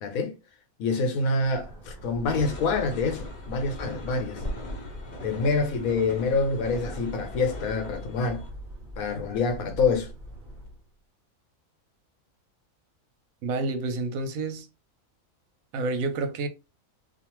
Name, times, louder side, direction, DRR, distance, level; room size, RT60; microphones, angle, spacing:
voice 1, 0.0-0.4 0.8-4.4 5.2-8.4 9.0-10.1, left 4 dB, 85° left, 1.2 m, -26 dB
sound 1, 1.4-10.9, equal, 35° right, 0.9 m, -41 dB
sound 2, 2.2-8.5, left 2 dB, 40° left, 0.8 m, -42 dB
voice 2, 13.4-14.7 15.7-16.5, right 3 dB, 85° right, 1.1 m, -29 dB
2.4 x 2.4 x 2.9 m
omnidirectional pair, 1.4 m